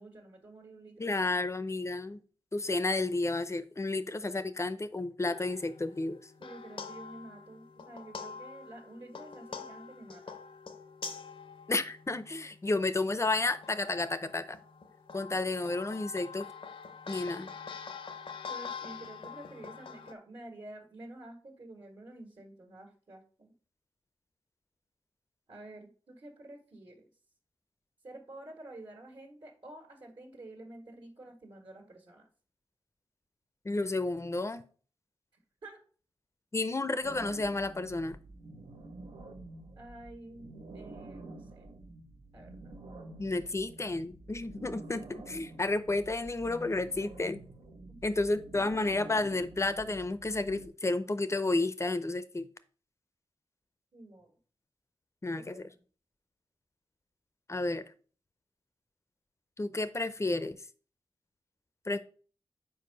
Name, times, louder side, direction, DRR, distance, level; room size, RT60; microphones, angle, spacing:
voice 1, 0.0-1.3 6.4-10.4 18.5-23.5 25.5-27.1 28.0-32.3 35.6-35.8 39.7-41.7 42.3-42.8 47.9-48.0 53.9-54.3 55.3-55.8, right 2 dB, 60° right, 1 dB, 1.6 m, -49 dB
voice 2, 1.0-2.2 2.5-6.2 11.7-14.6 15.1-16.5 17.1-17.5 33.6-34.6 36.5-38.2 43.2-47.4 48.0-52.5 55.2-55.7 57.5-57.9 59.6-60.6 61.9-62.0, left 2 dB, 30° left, 12 dB, 0.5 m, -31 dB
sound 1, 5.2-12.7 13.3-20.1, left 5 dB, 70° left, 0.7 m, -45 dB
sound 2, 37.0-50.7, right 2 dB, 85° right, 1.0 m, -49 dB
4.7 x 4.6 x 5.2 m, 0.41 s
cardioid pair, 65°, 10 cm